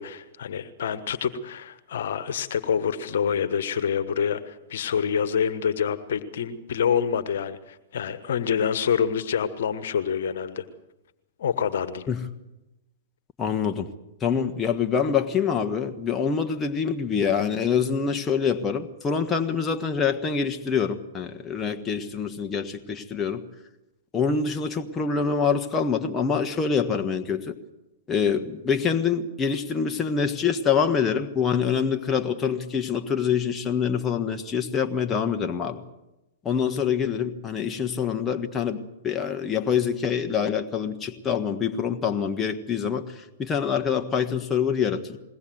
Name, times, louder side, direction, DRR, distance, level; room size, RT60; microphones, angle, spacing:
voice 1, 0.0-10.6 11.4-12.1, left 7 dB, 65° left, 14 dB, 1.5 m, -27 dB
voice 2, 13.4-13.9 14.2-23.4 24.1-27.5 28.1-35.8 36.4-38.8 39.0-43.0 43.4-45.2, left 6 dB, 20° left, 5 dB, 1.4 m, -25 dB
21.5 x 17.5 x 7.8 m, 0.96 s
hypercardioid pair, 115°, 0 cm